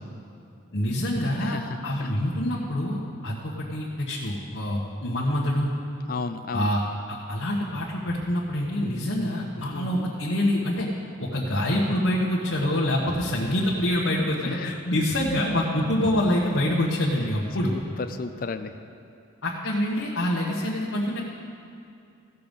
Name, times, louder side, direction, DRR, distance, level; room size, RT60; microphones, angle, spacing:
voice 1, 0.7-5.7 6.5-6.8 7.1-10.9 11.2-17.7 19.4-21.2, left 1 dB, 70° left, -5 dB, 1.2 m, -26 dB
voice 2, 1.4-2.1 6.1-6.7 9.7-10.0 14.4-14.7 17.7-18.7 19.6-19.7, left 4 dB, 45° left, 9 dB, 0.4 m, -34 dB
15.5 x 6.8 x 5.3 m, 2.5 s
head